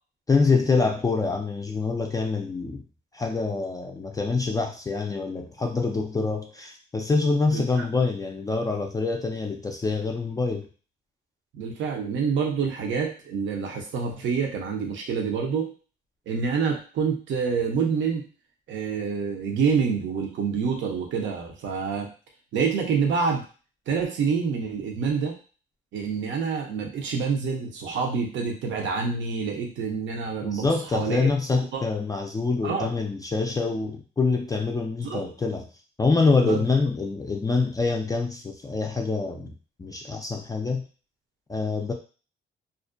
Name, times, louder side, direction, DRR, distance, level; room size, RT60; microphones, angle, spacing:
voice 1, 0.3-2.8 3.1-10.7 30.4-35.7 36.0-40.8 41.5-41.9, left 4 dB, 20° left, 1 dB, 0.3 m, -25 dB
voice 2, 7.5-7.9 11.5-15.7 16.3-18.2 18.7-22.1 22.5-23.5 23.9-25.4 25.9-31.3 31.7-31.8 32.6-32.9 35.0-35.2 36.4-36.6, right 5 dB, 70° right, 1 dB, 0.7 m, -27 dB
2.5 x 2.1 x 2.5 m, 0.36 s
cardioid pair, 90°, 20 cm